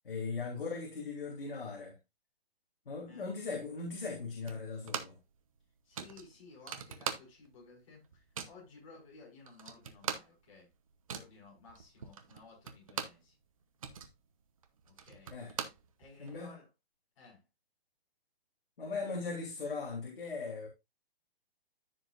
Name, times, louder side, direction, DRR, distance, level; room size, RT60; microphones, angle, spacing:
voice 1, 0.0-2.0 2.9-5.2 15.3-15.5 16.2-16.6 18.8-20.7, left 4 dB, 60° left, 2.7 m, -39 dB
sound 1, 4.5-5.3 5.6-5.7 5.9-7.6 7.9-8.6 9.2-9.3 9.5-13.3 13.6-16.4, right 7 dB, 35° right, 0.9 m, -42 dB
voice 2, 5.8-10.7 11.1-13.4 14.8-15.4 16.0-16.7 17.2-17.4, left 4 dB, 30° left, 5.2 m, -56 dB
14.0 x 4.9 x 2.5 m
hypercardioid pair, 175°, 31 cm